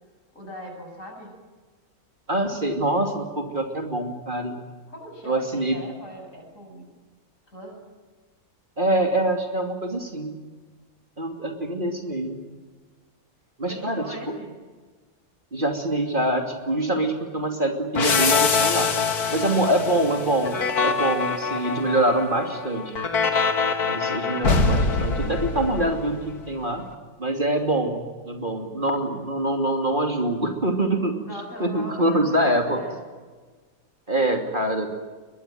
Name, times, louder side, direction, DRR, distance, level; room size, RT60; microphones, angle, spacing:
voice 1, 0.3-1.3 4.9-6.9 7.5-7.8 13.6-14.5 31.2-33.0, equal, 55° left, 2 dB, 8.3 m, -40 dB
voice 2, 2.3-4.6 5.2-5.8 8.8-10.4 11.2-12.4 13.6-14.3 15.5-18.9 19.3-22.9 23.9-26.8 27.2-31.1 31.6-32.8 34.1-34.9, right 1 dB, 35° right, 4 dB, 2.9 m, -25 dB
sound 1, 17.9-26.4, left 4 dB, 80° left, 2.4 m, -24 dB
23.0 x 22.0 x 9.3 m, 1.4 s
omnidirectional pair, 1.6 m